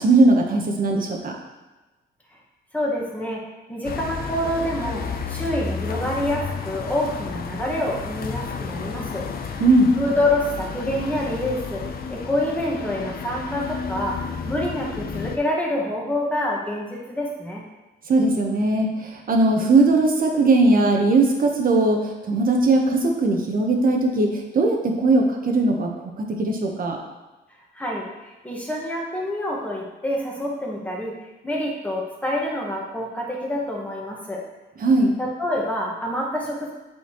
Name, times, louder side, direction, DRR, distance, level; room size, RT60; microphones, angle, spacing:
voice 1, 0.0-1.3 9.6-9.9 18.1-27.0 34.8-35.1, right 2 dB, 45° right, 2 dB, 1.2 m, -19 dB
voice 2, 2.7-3.4 3.7-9.6 10.0-11.8 12.1-17.6 27.7-31.1 31.4-34.5 35.2-36.7, left 1 dB, 5° left, -3 dB, 1.6 m, -27 dB
sound 1, 3.8-15.4, left 5 dB, 50° left, 0.7 m, -32 dB
8.5 x 4.2 x 3.1 m, 1.1 s
cardioid pair, 90°, 20 cm